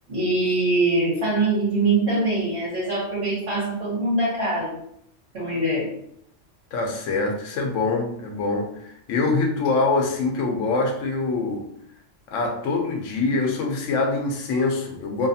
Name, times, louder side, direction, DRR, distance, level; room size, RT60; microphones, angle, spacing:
voice 1, 0.1-4.8 5.3-5.9, right 2 dB, 55° right, -9 dB, 1.4 m, -23 dB
voice 2, 6.7-11.6 12.3-15.3, left 3 dB, 90° left, 2 dB, 1.0 m, -24 dB
2.8 x 2.4 x 2.6 m, 0.71 s
omnidirectional pair, 1.3 m